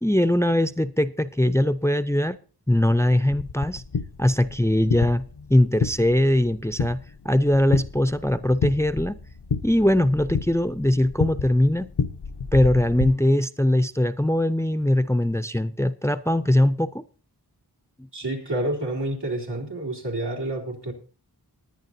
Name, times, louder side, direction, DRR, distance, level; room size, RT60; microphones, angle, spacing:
voice 1, 0.0-2.4 2.7-3.8 4.2-5.2 5.5-7.0 7.2-9.2 9.6-11.9 12.5-17.0, left 1 dB, 5° left, 0.5 m, -21 dB
sound 1, 3.3-13.1, left 5 dB, 85° left, 0.8 m, -31 dB
voice 2, 18.1-20.9, right 1 dB, 85° right, 3.0 m, -29 dB
20.0 x 10.0 x 2.7 m
wide cardioid pair, 45°, 40 cm